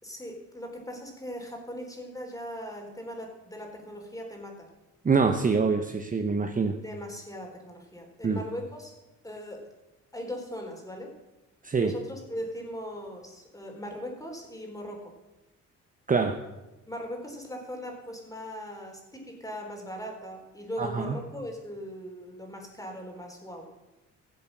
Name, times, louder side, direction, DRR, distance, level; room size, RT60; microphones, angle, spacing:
voice 1, 0.0-4.7 6.8-8.9 9.2-9.7 10.1-11.1 11.8-15.1 16.9-23.7, equal, 10° left, 2 dB, 3.7 m, -39 dB
voice 2, 5.0-6.8 8.2-8.4 11.6-11.9 16.1-16.4 20.8-21.2, right 5 dB, 25° right, 6 dB, 0.9 m, -25 dB
16.0 x 7.6 x 6.1 m, 1.0 s
cardioid pair, 90°, 30 cm